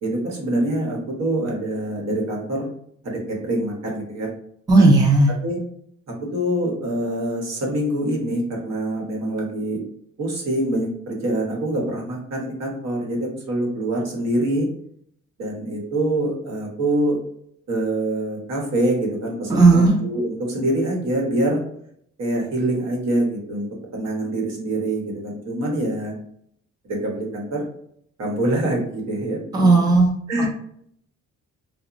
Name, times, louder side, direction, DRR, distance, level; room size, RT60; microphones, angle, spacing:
voice 1, 0.0-2.7 3.0-4.3 4.7-4.9 5.3-5.6 6.1-9.8 10.2-14.7 15.4-17.2 17.7-21.6 22.2-23.7 23.9-26.1 26.9-27.6 28.2-29.8 30.3-30.5, right 1 dB, 60° right, -2 dB, 1.0 m, -25 dB
voice 2, 4.7-5.3 19.5-19.9 29.5-30.1, right 3 dB, 15° right, -1 dB, 0.5 m, -14 dB
2.8 x 2.1 x 2.4 m, 0.68 s
cardioid pair, 90°, 30 cm